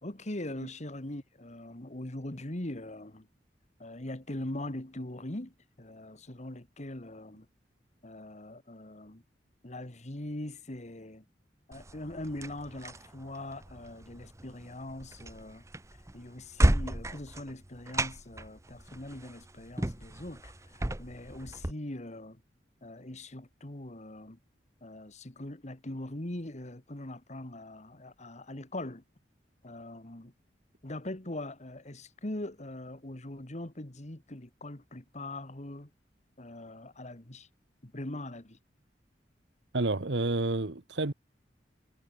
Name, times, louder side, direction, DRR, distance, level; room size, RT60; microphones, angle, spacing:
voice 1, 0.0-3.3 3.8-7.5 8.0-9.2 9.6-11.3 11.7-15.6 16.1-22.4 22.8-24.4 24.8-29.0 29.6-30.3 30.8-35.9 36.4-37.5 37.8-38.6, left 1 dB, 40° left, 2.0 m, -41 dB
sound 1, 11.7-21.7, right 1 dB, 15° right, 0.9 m, -33 dB
voice 2, 39.7-41.1, right 2 dB, 80° right, 1.2 m, -29 dB
head